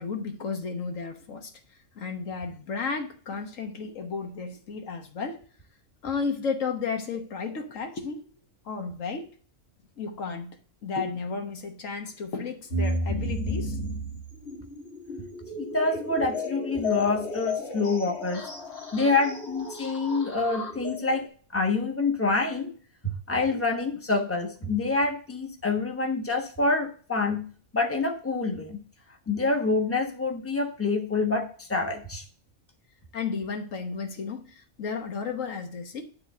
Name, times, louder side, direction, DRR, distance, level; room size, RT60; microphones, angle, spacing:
voice 1, 0.0-1.5 2.0-5.4 6.0-8.2 8.6-9.3 10.0-13.8 33.1-36.0, left 5 dB, 90° left, 5 dB, 1.5 m, -33 dB
sound 1, 12.7-21.3, left 1 dB, 55° left, 1.9 m, -33 dB
voice 2, 15.6-18.4 18.9-21.2 21.5-22.7 23.0-28.8 29.3-32.2, left 3 dB, 10° left, 3 dB, 1.1 m, -27 dB
9.9 x 3.6 x 6.5 m, 0.43 s
omnidirectional pair, 1.3 m